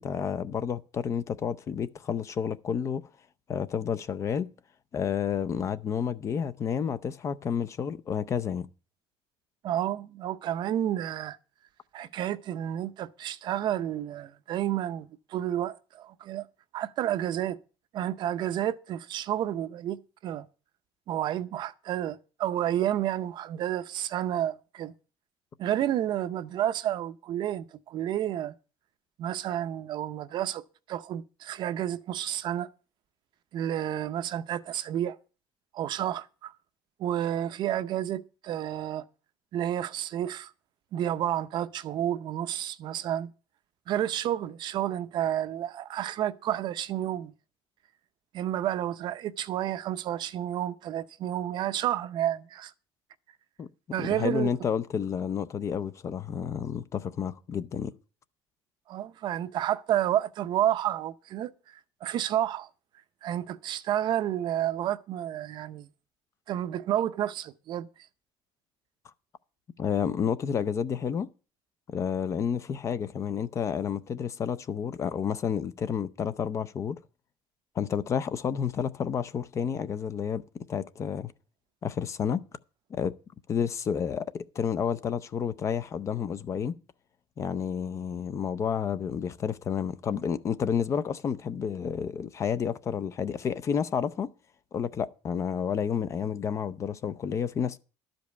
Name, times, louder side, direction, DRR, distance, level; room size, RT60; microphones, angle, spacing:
voice 1, 0.0-3.0 3.5-4.5 4.9-8.7 53.6-53.7 54.0-57.9 69.8-71.3 71.9-77.0 77.8-81.3 81.8-82.4 82.9-83.2 83.5-86.8 87.4-94.3 94.7-97.8, left 7 dB, 30° left, 0.5 m, -30 dB
voice 2, 9.6-11.4 11.9-16.5 16.7-17.6 17.9-20.5 21.1-24.9 25.6-28.5 29.2-30.6 30.9-32.7 33.5-35.2 35.7-36.5 37.0-39.0 39.5-40.5 40.9-43.3 43.9-47.3 48.3-52.7 53.9-54.5 58.9-62.7 63.2-65.9 66.5-67.9, right 11 dB, 45° right, 0.6 m, -30 dB
12.5 x 5.2 x 8.0 m
cardioid pair, 165°, 10 cm